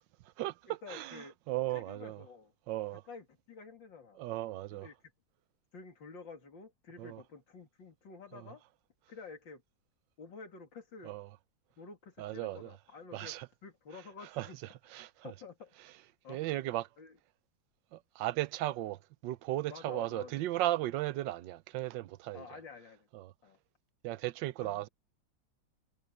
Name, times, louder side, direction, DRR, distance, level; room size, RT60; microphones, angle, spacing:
voice 1, 0.0-2.2 2.7-3.0 4.2-4.9 7.0-7.2 8.3-8.5 11.0-11.3 12.2-12.7 13.1-13.5 14.2-14.5 14.9-15.3 16.3-16.9 17.9-22.4 23.1-23.3 24.0-24.9, right 15 dB, 85° right, 1.3 m, -36 dB
voice 2, 0.7-1.4 1.7-2.5 2.9-4.2 4.7-4.9 5.7-8.6 9.1-9.6 10.2-11.1 11.8-15.7 16.2-16.6 17.0-17.2 19.7-20.5 22.3-23.1 23.4-23.6 24.6-24.9, left 4 dB, 90° left, 3.4 m, -50 dB
omnidirectional pair, 2.0 m